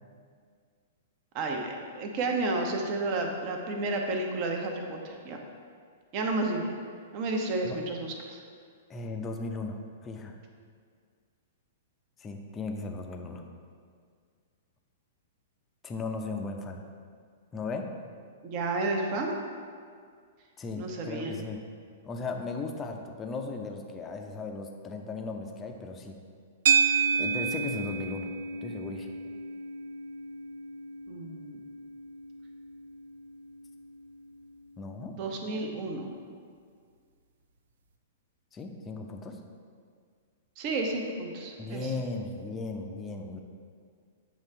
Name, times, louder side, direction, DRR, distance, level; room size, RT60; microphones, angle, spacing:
voice 1, 1.3-5.4 6.1-6.7 7.1-8.4 18.4-19.3 20.8-21.4 31.1-31.6 35.2-36.1 40.6-41.9, right 2 dB, 40° right, 2 dB, 0.8 m, -31 dB
voice 2, 8.9-10.3 12.2-13.4 15.8-16.8 17.5-17.9 20.6-21.6 22.0-26.2 27.2-28.3 28.6-29.1 34.8-35.2 38.5-39.4 41.6-43.4, left 3 dB, 20° left, 3 dB, 0.6 m, -36 dB
sound 1, 26.7-35.1, right 6 dB, 60° right, 0.4 m, -32 dB
8.3 x 3.2 x 4.5 m, 2.1 s
figure-of-eight pair, 105°, 0 cm